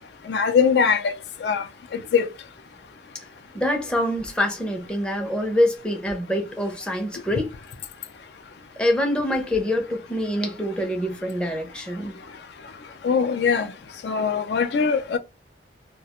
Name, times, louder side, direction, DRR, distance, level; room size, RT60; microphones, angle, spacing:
voice 1, 0.3-1.1 1.4-1.6 2.1-2.3 13.0-13.7 14.0-15.2, left 6 dB, 65° left, 0.4 m, -21 dB
voice 2, 3.5-7.5 8.8-12.1, left 1 dB, 5° left, 0.5 m, -25 dB
2.3 x 2.1 x 2.8 m
head